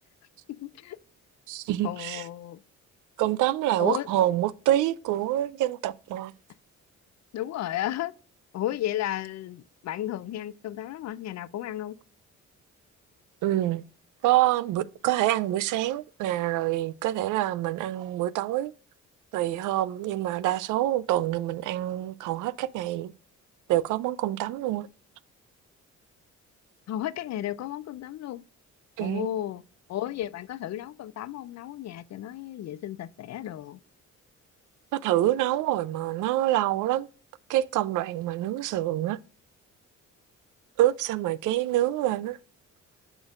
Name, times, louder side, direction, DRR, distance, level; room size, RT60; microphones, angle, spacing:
voice 1, 0.5-1.0 1.8-2.6 3.8-4.1 7.3-8.1 8.5-11.9 26.9-28.4 29.0-29.6 29.9-33.8, left 12 dB, 60° left, 0.5 m, -33 dB
voice 2, 1.5-2.2 3.2-6.3 13.4-13.8 14.2-18.7 19.3-23.1 23.7-24.9 29.0-29.3 34.9-37.1 37.5-39.2 40.8-42.4, right 14 dB, 85° right, 0.5 m, -26 dB
8.2 x 5.0 x 2.4 m
cardioid pair, 90°, 30 cm